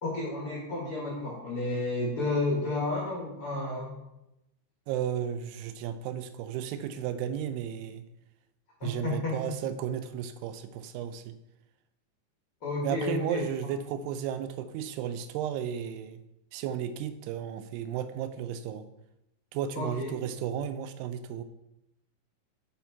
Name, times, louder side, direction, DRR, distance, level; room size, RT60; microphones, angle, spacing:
voice 1, 0.0-3.9 8.8-9.4 12.6-13.5 19.7-20.2, left 2 dB, 65° left, -3 dB, 1.3 m, -31 dB
voice 2, 4.9-8.0 8.8-11.3 12.8-16.2 16.5-18.9 19.5-21.4, right 9 dB, 90° right, 10 dB, 2.6 m, -34 dB
7.1 x 5.1 x 4.5 m, 0.88 s
omnidirectional pair, 4.6 m